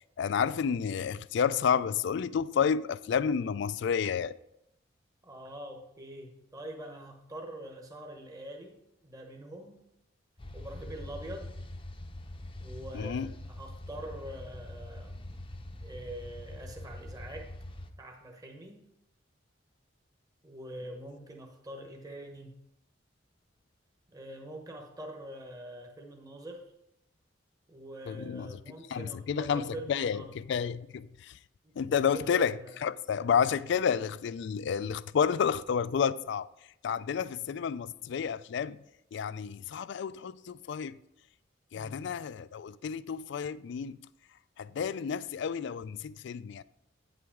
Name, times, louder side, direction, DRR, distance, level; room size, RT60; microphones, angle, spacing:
voice 1, 0.2-4.3 12.9-13.3 28.1-28.5 28.9-31.1 31.8-32.5 32.8-36.5 36.8-38.8 39.1-40.9 41.7-44.0 44.6-46.6, left 7 dB, 60° left, 0.3 m, -30 dB
voice 2, 5.2-8.8 9.0-9.8 10.5-11.5 12.6-15.5 15.8-17.5 18.0-18.8 20.4-22.6 24.1-26.6 27.7-30.3 31.6-32.8 41.7-42.1, right 1 dB, 20° right, 1.1 m, -44 dB
sound 1, 10.4-17.9, left 1 dB, 25° left, 0.6 m, -44 dB
9.4 x 7.8 x 3.6 m
head